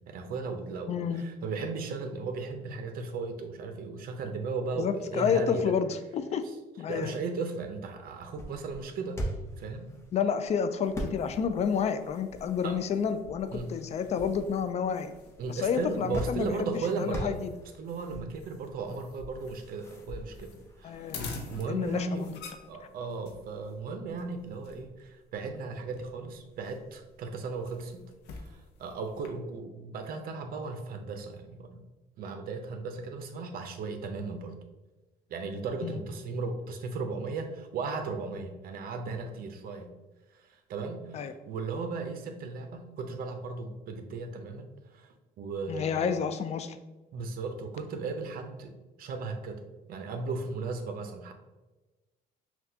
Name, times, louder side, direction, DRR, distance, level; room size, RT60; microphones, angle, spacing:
voice 1, 0.1-5.7 6.9-9.2 9.6-9.9 12.6-12.8 13.5-13.7 15.4-17.3 17.8-20.5 20.8-21.1 21.5-22.2 22.7-28.0 28.3-31.8 32.2-34.5 35.3-39.9 40.3-46.2 47.1-48.7 49.0-49.6 49.9-51.3, right 4 dB, 60° right, 6 dB, 0.6 m, -36 dB
voice 2, 0.9-1.2 4.8-6.4 6.8-7.2 10.1-15.1 15.5-17.5 20.8-21.3 21.7-22.3 35.8-36.0 41.1-41.3 45.7-46.8, left 7 dB, 40° left, 10 dB, 0.4 m, -30 dB
sound 1, 7.9-22.0, right 1 dB, 15° left, 0.8 m, -43 dB
sound 2, 10.8-29.3, left 3 dB, 85° left, 0.6 m, -47 dB
5.8 x 2.3 x 2.7 m, 1.1 s
cardioid pair, 110°, 17 cm